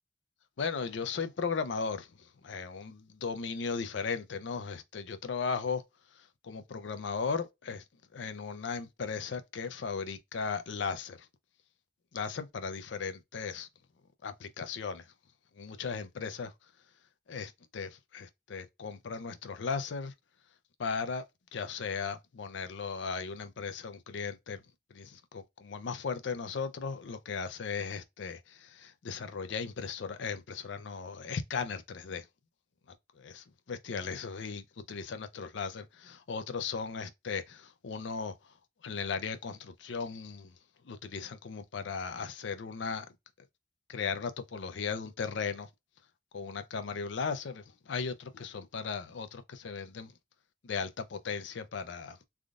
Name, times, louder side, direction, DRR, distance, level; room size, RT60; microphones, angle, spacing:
voice 1, 0.6-5.8 6.4-7.8 8.1-11.3 12.1-13.7 14.2-15.0 15.6-16.5 17.3-20.1 20.8-21.2 21.5-24.6 24.9-32.3 33.2-38.3 38.8-40.5 40.9-43.1 43.9-45.7 46.3-50.1 50.6-52.2, left 5 dB, 75° left, 0.5 m, -37 dB
3.5 x 2.4 x 2.4 m
head